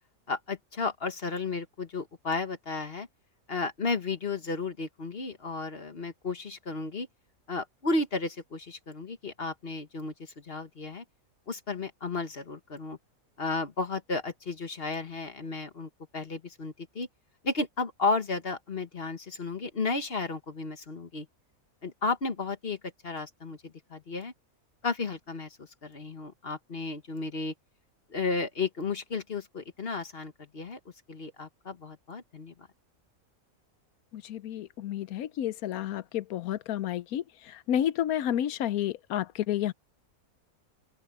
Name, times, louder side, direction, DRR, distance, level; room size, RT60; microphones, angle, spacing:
voice 1, 0.3-3.1 3.5-7.1 7.5-11.0 11.5-13.0 13.4-17.1 17.4-21.3 21.8-22.8 23.0-24.3 24.8-27.5 28.1-30.8 31.1-32.5, left 3 dB, 45° left, 1.6 m, -33 dB
voice 2, 34.1-37.2 37.7-39.7, left 11 dB, 85° left, 1.2 m, -30 dB
open air
omnidirectional pair, 1.5 m